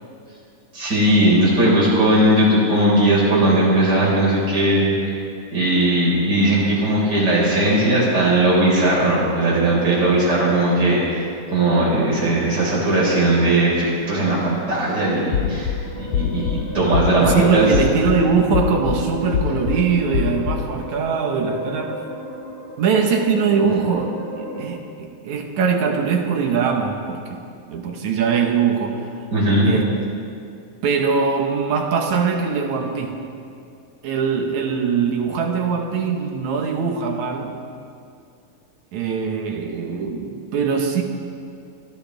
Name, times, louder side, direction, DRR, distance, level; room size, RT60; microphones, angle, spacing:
voice 1, 0.7-5.1 5.5-11.2 11.5-15.7 16.0-17.7 29.3-29.7, right 1 dB, 30° right, -6 dB, 5.6 m, -18 dB
sound 1, 15.3-15.7 16.1-16.5 16.9-17.3 17.7-18.2 18.5-19.0 19.3-19.8 20.1-20.6, left 8 dB, 75° left, 1.4 m, -23 dB
sound 2, 15.4-24.7, equal, 35° left, 6.0 m, -36 dB
voice 2, 17.2-22.0 22.8-27.4 27.7-29.1 29.6-30.0 30.8-33.3 34.0-37.5 38.9-41.0, right 5 dB, 65° right, 2 dB, 2.4 m, -22 dB
25.0 x 16.0 x 3.5 m, 2.5 s
omnidirectional pair, 4.0 m